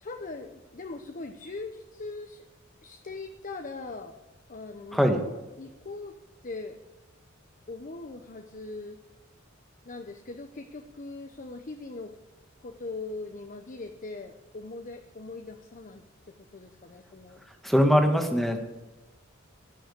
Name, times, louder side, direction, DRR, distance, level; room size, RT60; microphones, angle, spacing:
voice 1, 0.0-2.5 2.8-4.2 4.5-6.1 6.4-6.8 7.7-9.0 9.8-12.1 12.6-16.0 16.5-17.4, left 3 dB, 40° left, 6 dB, 0.8 m, -40 dB
voice 2, 17.6-18.6, equal, ahead, 5 dB, 1.5 m, -21 dB
16.5 x 6.3 x 8.2 m, 1.1 s
head